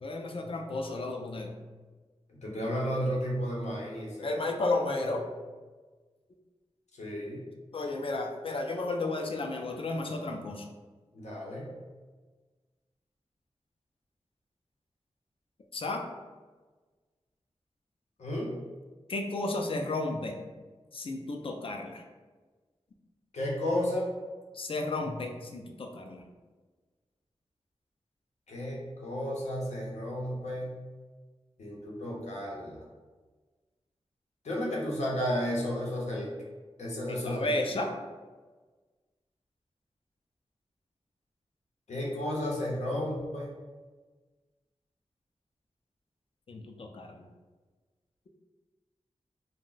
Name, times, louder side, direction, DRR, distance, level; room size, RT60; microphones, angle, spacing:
voice 1, 0.0-1.5 4.2-5.3 7.7-10.7 15.7-16.0 19.1-20.4 20.9-22.0 24.5-26.2 37.1-37.9 46.5-47.3, left 2 dB, 55° left, 3 dB, 0.4 m, -33 dB
voice 2, 2.3-4.4 6.9-7.4 11.1-11.7 18.2-18.5 23.3-24.1 28.5-30.7 31.6-32.8 34.4-36.3 36.8-37.5 41.9-43.5, equal, 90° left, -3 dB, 0.7 m, -33 dB
2.5 x 2.1 x 3.7 m, 1.3 s
wide cardioid pair, 100°, 11 cm